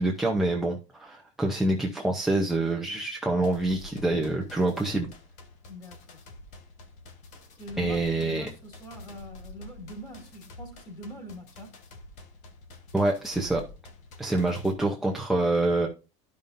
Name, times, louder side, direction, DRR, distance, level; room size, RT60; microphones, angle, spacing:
voice 1, 0.0-5.1 7.8-8.5 12.9-13.6 14.2-15.9, right 2 dB, ahead, 0.7 m, -26 dB
sound 1, 3.4-14.7, left 1 dB, 50° left, 1.4 m, -48 dB
voice 2, 5.7-6.2 7.6-11.7 14.3-14.6, equal, 25° left, 2.5 m, -43 dB
12.5 x 5.4 x 2.6 m
cardioid pair, 170°, 16 cm